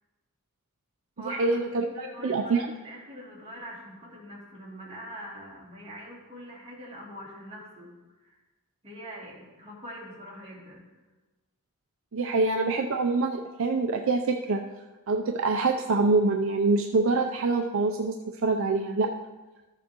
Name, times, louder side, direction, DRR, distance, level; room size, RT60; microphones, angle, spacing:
voice 1, 1.2-1.9 2.2-2.6 12.1-14.6 15.1-18.1 18.4-19.1, right 3 dB, 65° right, 3 dB, 0.5 m, -25 dB
voice 2, 1.9-8.4 8.8-10.9, equal, 30° right, -6 dB, 2.7 m, -43 dB
14.0 x 7.0 x 3.0 m, 1.2 s
head